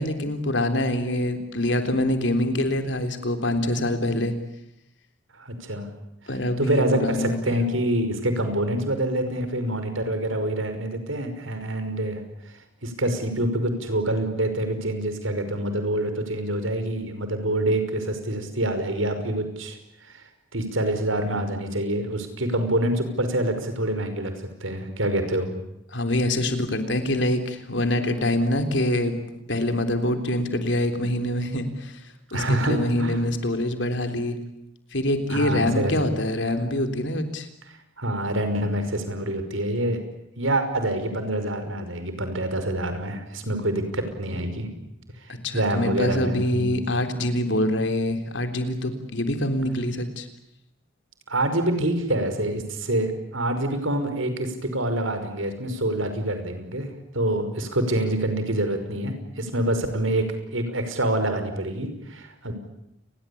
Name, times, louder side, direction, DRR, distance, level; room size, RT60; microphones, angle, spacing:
voice 1, 0.0-4.3 6.3-7.6 25.9-29.1 29.5-32.0 32.3-34.4 34.9-37.5 45.4-50.3, left 1 dB, 65° left, 7 dB, 3.6 m, -25 dB
voice 2, 5.3-5.9 6.6-20.2 20.5-25.5 32.3-33.2 35.3-36.0 37.7-40.0 40.4-44.8 45.2-46.8 51.3-62.5, right 1 dB, 80° right, 8 dB, 5.5 m, -26 dB
29.5 x 21.5 x 8.6 m, 0.83 s
head